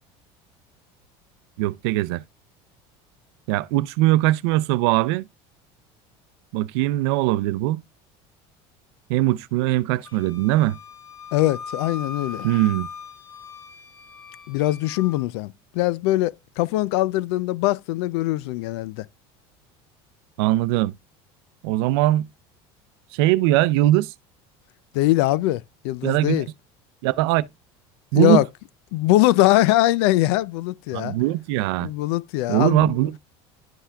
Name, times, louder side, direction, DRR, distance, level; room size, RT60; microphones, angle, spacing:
voice 1, 1.6-2.2 3.5-5.3 6.5-7.8 9.1-10.8 12.4-12.9 20.4-20.9 21.6-22.3 23.1-24.1 26.0-26.5 27.0-27.5 28.1-28.4 30.9-31.9 32.5-33.2, right 16 dB, 85° right, 0.5 m, -21 dB
Wind instrument woodwind instrument, 10.0-15.3, left 5 dB, 25° left, 0.9 m, -39 dB
voice 2, 11.3-12.5 14.5-19.1 24.9-26.5 28.1-28.5 28.9-31.2 31.8-32.9, left 16 dB, 85° left, 0.5 m, -22 dB
11.5 x 5.7 x 2.3 m
cardioid pair, 175°, 13 cm